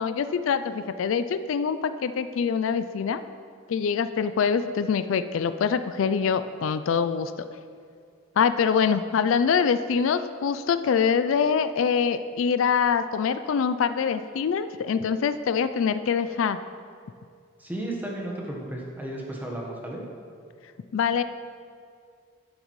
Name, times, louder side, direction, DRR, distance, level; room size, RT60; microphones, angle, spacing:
voice 1, 0.0-3.2 3.7-7.5 8.4-16.6 20.9-21.2, left 6 dB, 70° left, 12 dB, 0.3 m, -24 dB
voice 2, 17.6-20.0, right 1 dB, 10° right, -2 dB, 1.2 m, -34 dB
11.0 x 8.8 x 3.1 m, 2.2 s
head